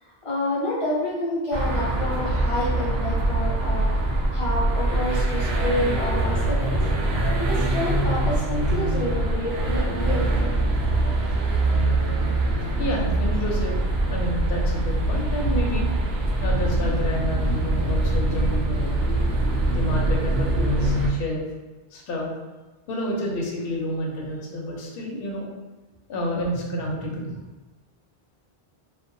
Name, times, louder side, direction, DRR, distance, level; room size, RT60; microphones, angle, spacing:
voice 1, 0.0-3.9 4.3-6.7 7.4-10.4, left 1 dB, 40° left, -6 dB, 0.5 m, -28 dB
sound 1, 1.5-21.1, right 2 dB, 85° right, 0.9 m, -23 dB
voice 2, 12.8-15.9 16.4-18.9 19.7-21.4 21.9-22.3 22.9-25.5 26.1-27.4, equal, 70° left, -2 dB, 0.8 m, -29 dB
2.6 x 2.1 x 2.5 m, 1.2 s
omnidirectional pair, 1.0 m